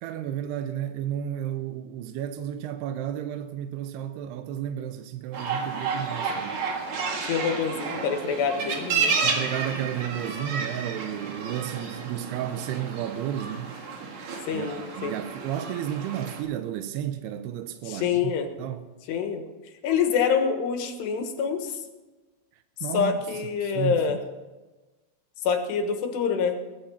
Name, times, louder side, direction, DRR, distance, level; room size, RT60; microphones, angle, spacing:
voice 1, 0.0-6.6 9.2-13.8 14.5-18.3 18.6-18.9 22.8-23.2 23.6-24.2, right 11 dB, 80° right, 2.8 m, -32 dB
sound 1, 5.3-16.4, right 5 dB, 55° right, 2.8 m, -31 dB
voice 2, 7.2-9.2 14.5-15.1 17.9-18.5 19.1-19.4 19.8-21.8 22.9-24.2 25.4-26.6, left 6 dB, 85° left, 3.5 m, -26 dB
20.5 x 9.9 x 5.7 m
omnidirectional pair, 4.7 m